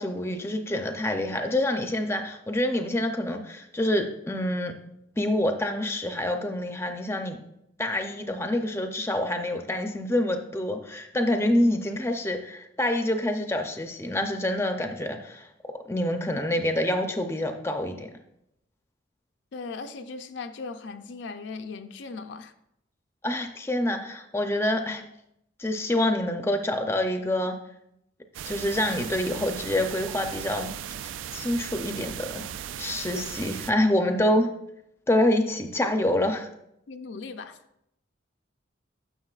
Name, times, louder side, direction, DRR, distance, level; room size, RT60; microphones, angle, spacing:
voice 1, 0.0-4.8 5.2-7.4 7.8-15.5 15.9-18.1 23.2-25.0 25.6-27.6 28.5-30.7 31.0-32.4 32.8-34.5 35.1-36.5, left 1 dB, 15° left, 5 dB, 0.5 m, -26 dB
voice 2, 19.5-22.5 36.9-37.6, left 4 dB, 65° left, 8 dB, 0.5 m, -38 dB
sound 1, 28.3-33.7, right 10 dB, 75° right, 0.3 m, -37 dB
9.6 x 7.1 x 2.4 m, 0.79 s
head